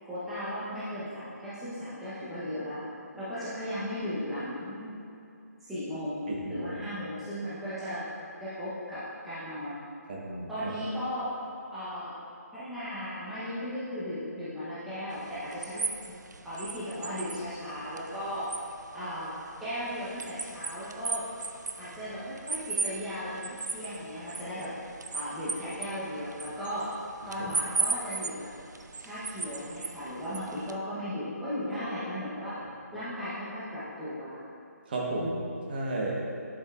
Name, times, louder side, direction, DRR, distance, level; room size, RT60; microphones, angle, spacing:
voice 1, 0.0-2.8 3.1-5.0 5.6-8.0 8.4-9.8 10.5-11.3 11.7-12.1 12.5-15.9 16.4-18.5 18.9-19.3 19.6-21.3 21.8-24.7 25.1-26.9 27.3-28.5 29.0-32.6 32.9-34.4, equal, ahead, -14 dB, 0.8 m, -36 dB
voice 2, 6.3-6.7 10.1-10.7 27.4-27.5 34.9-35.4 35.7-36.2, right 2 dB, 35° right, -3 dB, 1.1 m, -33 dB
sound 1, 15.1-30.7, right 4 dB, 85° right, 0.5 m, -37 dB
11.0 x 5.2 x 2.4 m, 2.6 s
hypercardioid pair, 165°, 9 cm